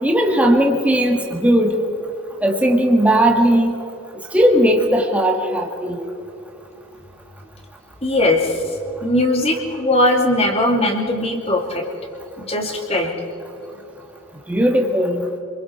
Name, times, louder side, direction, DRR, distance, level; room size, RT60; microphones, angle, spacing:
voice 1, 0.0-1.8 2.4-3.7 4.3-6.1 14.5-15.3, equal, 5° right, 1 dB, 1.7 m, -17 dB
voice 2, 8.0-11.8 12.4-13.1, left 1 dB, 30° left, 1 dB, 2.6 m, -19 dB
28.0 x 22.0 x 4.6 m, 2.8 s
head